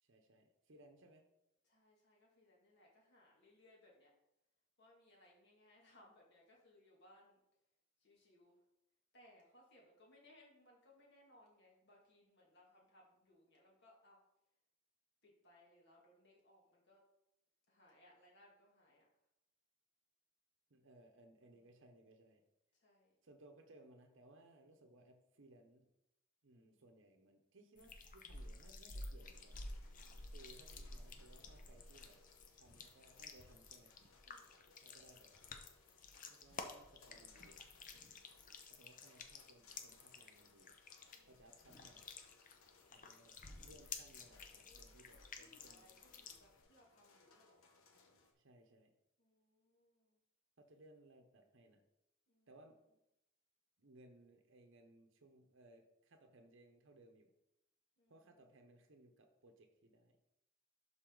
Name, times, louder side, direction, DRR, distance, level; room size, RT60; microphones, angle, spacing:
voice 1, 0.0-1.2 20.7-22.4 23.2-25.9 26.4-29.6 30.2-32.2 32.5-33.9 34.8-35.3 36.3-37.6 38.7-40.8 41.3-42.1 42.9-45.2 45.4-46.0 48.3-48.9 50.6-51.8 52.5-52.8 53.8-57.3 58.1-60.2, right 1 dB, 60° right, 4 dB, 0.8 m, -64 dB
voice 2, 1.6-4.1 4.8-7.4 8.0-8.6 9.1-14.2 15.2-17.1 17.7-19.1 21.4-21.8 22.7-23.1 26.5-26.8 30.0-30.6 34.2-34.5 37.9-38.3 41.1-41.4 44.7-44.8 45.1-47.7 49.2-50.2 52.3-52.5 58.0-58.5, left 1 dB, 55° left, -3 dB, 2.3 m, -68 dB
sound 1, 27.8-46.6, left 3 dB, 40° left, 0.7 m, -53 dB
sound 2, 29.2-48.3, left 4 dB, 80° left, 1.2 m, -68 dB
11.5 x 4.1 x 3.9 m, 0.85 s
head